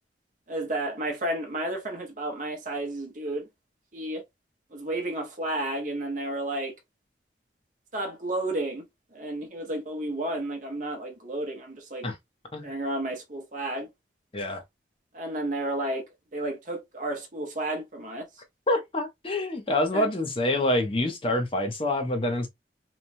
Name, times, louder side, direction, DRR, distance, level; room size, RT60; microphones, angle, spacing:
voice 1, 0.5-3.5 3.9-4.2 4.7-6.7 7.9-8.8 9.1-12.1 12.6-13.9 15.1-16.0 16.3-18.3 19.9-20.1, right 1 dB, 45° right, 0.7 m, -32 dB
voice 2, 18.7-22.5, left 1 dB, 30° left, 0.5 m, -26 dB
3.0 x 2.2 x 2.5 m
head